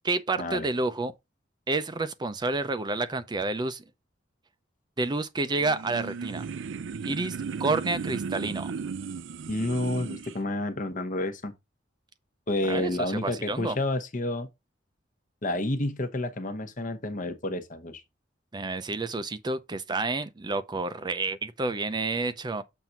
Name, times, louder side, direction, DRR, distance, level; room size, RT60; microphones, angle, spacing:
voice 1, 0.0-1.1 1.7-3.8 5.0-6.5 7.0-8.7 12.7-13.8 18.5-22.6, right 3 dB, 25° right, 0.5 m, -29 dB
sound 1, 5.5-10.4, right 5 dB, 85° right, 0.4 m, -35 dB
voice 2, 9.5-11.5 12.5-14.5 15.4-18.0, left 1 dB, 45° left, 1.0 m, -30 dB
7.3 x 2.7 x 5.7 m
head